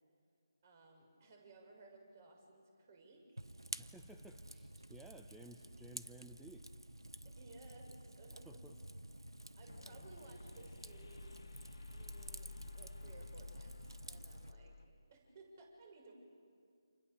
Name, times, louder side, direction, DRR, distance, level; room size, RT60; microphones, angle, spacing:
voice 1, 0.6-3.5 7.2-8.7 9.6-11.5 11.9-14.8 15.1-16.1, right 2 dB, 35° right, 2 dB, 6.4 m, -59 dB
Fire, 3.4-14.5, right 1 dB, 90° right, 0.9 m, -51 dB
voice 2, 3.8-6.6 8.4-8.8, right 2 dB, 5° right, 4 dB, 0.8 m, -57 dB
sound 1, 9.7-14.8, left 3 dB, 50° left, 2.0 m, -53 dB
29.0 x 28.0 x 7.0 m, 2.2 s
figure-of-eight pair, 150°, 2 cm